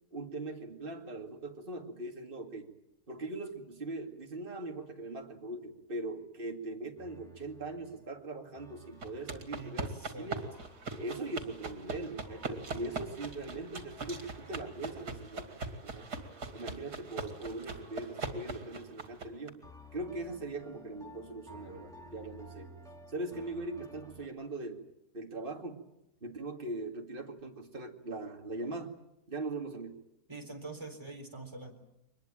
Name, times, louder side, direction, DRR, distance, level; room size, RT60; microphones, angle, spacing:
voice 1, 0.1-2.7 3.1-10.5 11.0-16.1 16.5-19.6 19.9-22.7 23.1-24.9 25.1-25.8 26.2-29.0 29.3-30.1, right 2 dB, 35° right, 3 dB, 2.5 m, -41 dB
sound 1, 7.0-17.4 17.8-19.2 19.6-24.3, equal, ahead, 3.4 m, -56 dB
sound 2, 9.0-19.5, right 3 dB, 75° right, 2.9 m, -41 dB
voice 2, 9.5-10.3 30.3-31.8, right 3 dB, 15° right, 3 dB, 3.9 m, -45 dB
23.5 x 20.5 x 9.0 m, 0.84 s
omnidirectional pair, 1.7 m